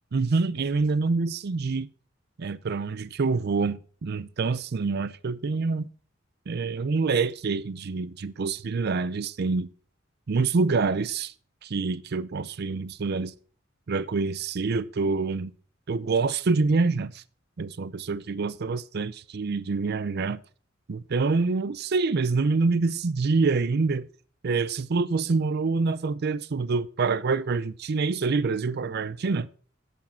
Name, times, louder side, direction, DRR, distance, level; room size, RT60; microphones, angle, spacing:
voice 1, 0.1-1.9 2.4-5.9 6.5-9.7 10.3-11.3 11.6-13.3 13.9-15.5 15.9-17.2 17.6-20.4 20.9-24.1 24.4-29.5, right 4 dB, 55° right, 0.5 m, -26 dB
11.5 x 8.4 x 4.2 m
head